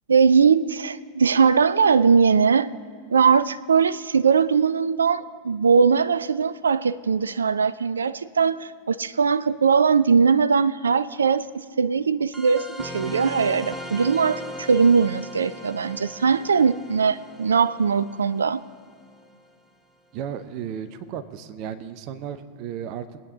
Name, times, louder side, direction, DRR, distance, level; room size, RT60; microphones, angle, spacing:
voice 1, 0.1-2.7 3.1-18.6, right 5 dB, 70° right, 0.3 m, -20 dB
sound 1, 12.3-19.4, equal, 5° right, 0.9 m, -39 dB
voice 2, 20.1-23.2, right 8 dB, 40° right, 0.6 m, -34 dB
23.0 x 8.8 x 2.8 m
figure-of-eight pair, 90°, 0 cm